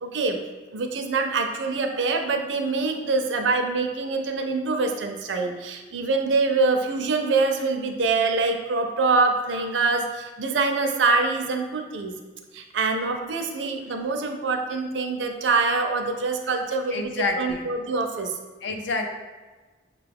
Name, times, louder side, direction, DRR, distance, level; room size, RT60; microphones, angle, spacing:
voice 1, 0.0-0.4 0.7-12.1 12.5-18.4, right 3 dB, 85° right, 5 dB, 0.5 m, -25 dB
voice 2, 16.9-17.7 18.6-19.1, left 3 dB, 75° left, 4 dB, 0.5 m, -28 dB
5.8 x 2.3 x 3.4 m, 1.3 s
head